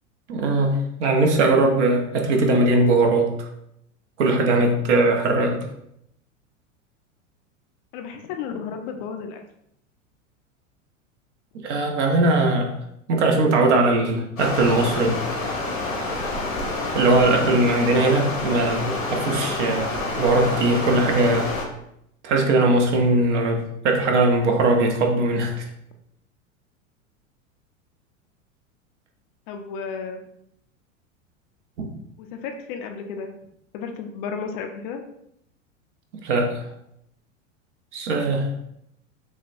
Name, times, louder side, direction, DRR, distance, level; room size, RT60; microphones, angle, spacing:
voice 1, 0.3-3.3 4.2-5.7 11.6-12.7 13.1-15.2 16.9-19.9 20.2-21.5 22.2-25.6 31.8-31.9 36.2-36.6 37.9-38.5, right 2 dB, 60° right, 3 dB, 0.9 m, -20 dB
voice 2, 7.9-9.4 29.5-30.2 32.2-33.3 33.7-35.0, left 6 dB, 40° left, 5 dB, 0.4 m, -33 dB
Stream, 14.4-21.6, left 2 dB, 90° left, 1.1 m, -28 dB
6.1 x 2.2 x 2.6 m, 0.76 s
figure-of-eight pair, 90°, 40 cm